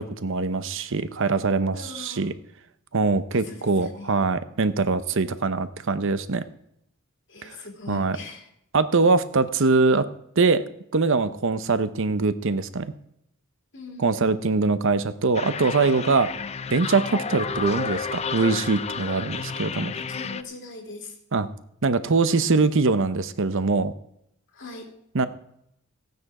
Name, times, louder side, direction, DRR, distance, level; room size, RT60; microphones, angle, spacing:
voice 1, 0.0-2.3 2.9-6.4 7.4-7.6 7.9-8.2 8.7-10.0 10.4-10.6 10.9-12.9 14.0-16.3 16.7-19.9 21.3-21.5 21.8-23.9 25.1-25.3, right 3 dB, 60° right, 12 dB, 0.8 m, -23 dB
voice 2, 1.7-2.3 3.3-4.2 7.3-8.5 13.7-14.6 19.1-19.3 19.9-21.2 24.5-24.9, left 3 dB, 60° left, 2 dB, 2.6 m, -41 dB
sound 1, 15.3-20.4, left 5 dB, 30° left, 0.5 m, -31 dB
15.0 x 9.5 x 4.8 m, 0.75 s
head